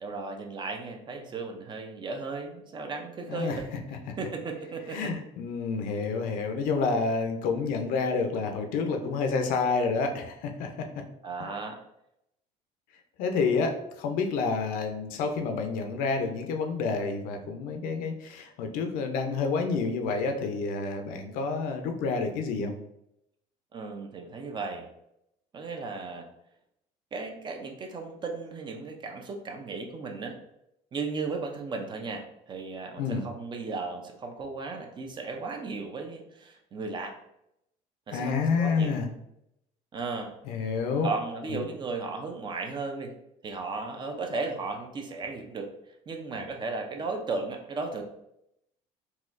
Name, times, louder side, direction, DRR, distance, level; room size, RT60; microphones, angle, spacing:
voice 1, 0.0-3.7 4.2-5.1 11.2-11.8 23.7-24.9 25.5-26.3 27.1-30.4 30.9-37.1 38.1-38.9 39.9-40.3 41.0-43.1 43.4-45.7 46.1-48.0, right 3 dB, 30° right, 4 dB, 0.5 m, -35 dB
voice 2, 3.3-3.6 4.9-10.7 13.2-22.7 33.0-33.2 38.1-39.1 40.5-41.1 41.5-41.6, left 4 dB, 75° left, 5 dB, 0.6 m, -29 dB
4.1 x 2.3 x 2.5 m, 0.80 s
cardioid pair, 110°, 14 cm